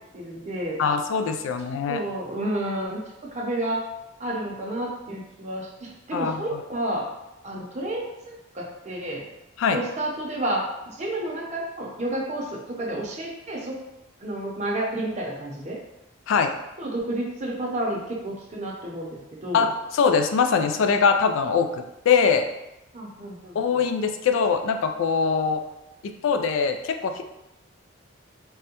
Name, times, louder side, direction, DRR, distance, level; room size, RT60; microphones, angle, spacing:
voice 1, 0.1-0.8 1.9-3.0 3.3-3.9 4.2-7.1 7.4-9.3 9.7-10.6 10.9-13.8 14.2-15.8 16.8-19.6 22.9-23.6, right 1 dB, 35° right, -3 dB, 0.6 m, -30 dB
voice 2, 0.8-2.0 6.1-6.4 9.6-9.8 16.3-16.5 19.5-22.5 23.5-25.6 26.0-27.2, left 5 dB, 75° left, 6 dB, 0.3 m, -22 dB
3.4 x 2.1 x 2.8 m, 0.92 s
head